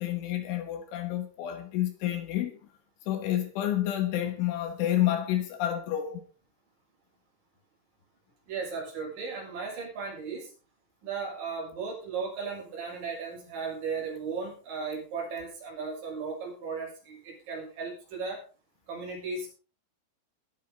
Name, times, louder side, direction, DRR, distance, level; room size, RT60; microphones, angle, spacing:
voice 1, 0.0-2.5 3.1-6.2, left 12 dB, 75° left, 3.7 m, -29 dB
voice 2, 8.5-10.5 11.0-18.4 18.9-19.5, right 5 dB, 45° right, 8.0 m, -36 dB
20.5 x 9.5 x 4.1 m
omnidirectional pair, 5.8 m